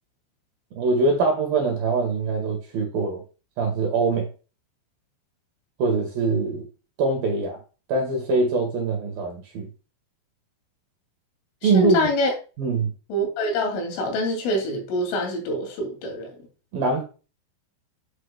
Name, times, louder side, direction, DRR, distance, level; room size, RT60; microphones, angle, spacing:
voice 1, 0.7-3.2 3.6-4.3 5.8-6.6 7.0-7.6 7.9-9.7 11.6-12.0 12.6-12.9 16.7-17.0, right 3 dB, 55° right, 3.0 m, -23 dB
voice 2, 11.6-12.3 13.1-16.3, equal, 75° left, 5.2 m, -25 dB
9.9 x 7.5 x 2.3 m
omnidirectional pair, 5.8 m